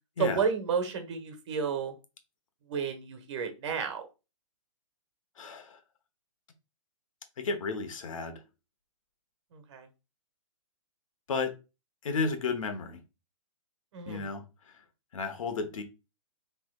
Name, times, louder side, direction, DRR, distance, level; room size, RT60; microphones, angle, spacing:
voice 1, 0.2-1.9 2.7-4.0 9.5-9.9 13.9-14.3, right 6 dB, 55° right, 1.4 m, -31 dB
voice 2, 5.4-5.8 7.4-8.4 11.3-11.5 12.0-13.0 14.1-14.4 15.1-15.8, left 4 dB, 70° left, 1.1 m, -32 dB
6.2 x 3.4 x 2.4 m
hypercardioid pair, 130°, 18 cm